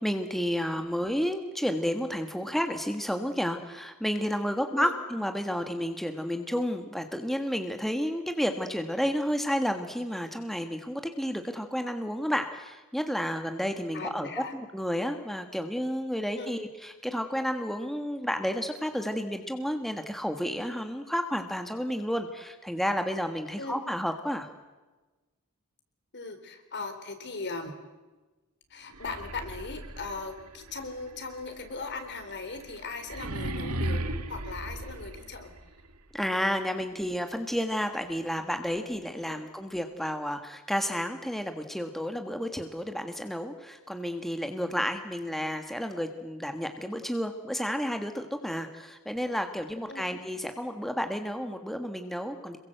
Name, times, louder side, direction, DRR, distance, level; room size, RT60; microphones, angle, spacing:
voice 1, 0.0-24.5 36.1-52.6, equal, ahead, 6 dB, 1.5 m, -31 dB
voice 2, 13.9-14.5 16.3-16.6 23.6-23.8 26.1-27.7 28.7-35.5 39.2-39.4 49.9-50.1, left 3 dB, 50° left, 7 dB, 3.9 m, -38 dB
sound 1, 28.9-35.8, right 1 dB, 85° right, 2.1 m, -37 dB
27.0 x 22.5 x 7.9 m, 1.2 s
head